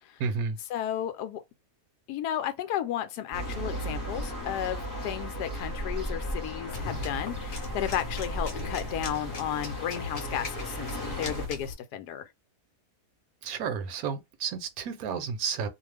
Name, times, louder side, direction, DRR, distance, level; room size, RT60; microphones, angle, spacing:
voice 1, 0.2-0.6 13.4-15.7, right 6 dB, 70° right, 1.0 m, -31 dB
voice 2, 0.7-1.4 2.1-12.3, left 11 dB, 85° left, 1.1 m, -33 dB
sound 1, 3.3-11.5, equal, 15° left, 0.9 m, -36 dB
sound 2, 6.7-11.7, left 2 dB, 45° left, 1.0 m, -38 dB
2.5 x 2.3 x 3.2 m
omnidirectional pair, 1.7 m